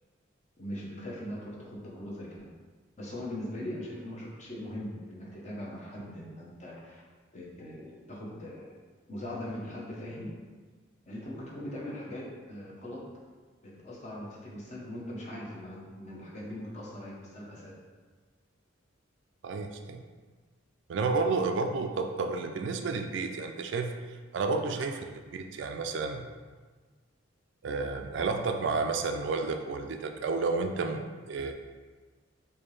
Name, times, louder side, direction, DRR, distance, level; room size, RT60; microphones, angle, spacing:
voice 1, 0.6-2.3 3.0-7.0 7.3-8.7 9.1-10.3 11.1-12.2 12.5-13.0 13.6-17.7 24.8-24.9, left 1 dB, 35° left, -4 dB, 0.8 m, -40 dB
voice 2, 19.4-20.0 20.9-23.9 24.3-25.0 25.3-26.3 27.6-31.5, right 4 dB, 65° right, 6 dB, 0.3 m, -31 dB
4.2 x 2.7 x 3.2 m, 1.4 s
head